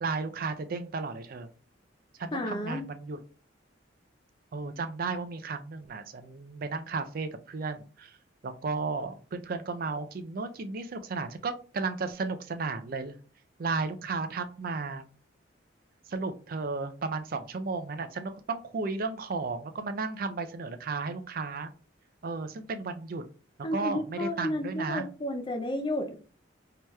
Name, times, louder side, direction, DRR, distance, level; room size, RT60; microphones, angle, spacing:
voice 1, 0.0-1.5 2.2-3.2 4.5-8.2 8.4-13.1 13.6-15.0 16.1-21.7 22.2-23.2 23.7-25.1, right 4 dB, 50° right, 0.4 m, -34 dB
voice 2, 2.3-2.8 23.6-26.2, left 1 dB, 25° left, 0.5 m, -32 dB
4.6 x 2.8 x 2.2 m
head